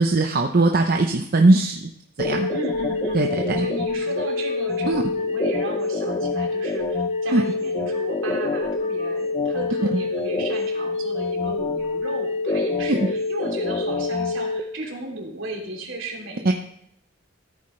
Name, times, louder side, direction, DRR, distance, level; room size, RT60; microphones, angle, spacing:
voice 1, 0.0-1.9 2.2-2.5 3.1-3.7 4.9-5.0 7.3-7.4 12.9-13.0 16.4-16.5, right 2 dB, 50° right, 3 dB, 0.7 m, -19 dB
sound 1, 2.2-14.6, left 3 dB, 30° left, 0.7 m, -26 dB
voice 2, 2.5-16.5, right 2 dB, 70° right, 0 dB, 3.0 m, -35 dB
14.5 x 8.9 x 3.2 m, 0.72 s
head